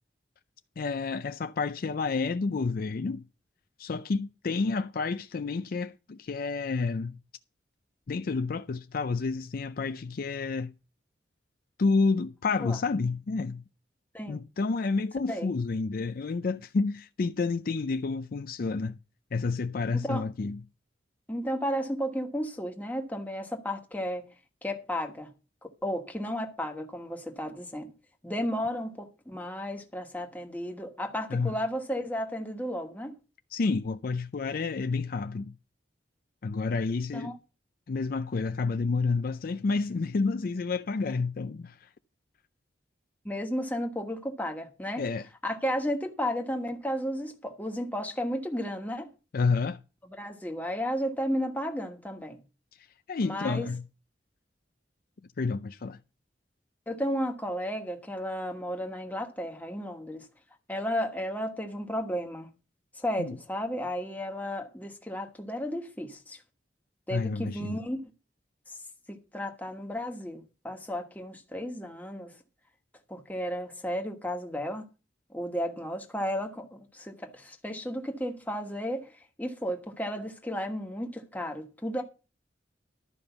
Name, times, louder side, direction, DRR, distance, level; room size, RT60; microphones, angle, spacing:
voice 1, 0.8-3.3 3.8-7.2 8.1-10.7 11.8-13.6 14.3-19.0 19.3-20.6 31.3-31.6 33.5-35.5 36.4-37.3 37.9-41.9 45.0-45.3 49.3-49.8 52.8-53.8 55.4-56.0 63.2-63.4 67.1-67.8, left 4 dB, 50° left, 0.4 m, -29 dB
voice 2, 21.3-24.3 24.6-25.3 25.6-27.9 28.2-33.2 37.1-37.4 43.2-45.1 45.4-49.1 50.0-52.4 53.2-53.7 56.9-60.3 60.7-62.5 62.9-66.4 67.1-68.1 68.7-68.8 69.1-72.4 73.1-74.8 75.3-79.1 79.4-82.0, equal, 10° left, 1.4 m, -33 dB
12.5 x 5.2 x 7.0 m
head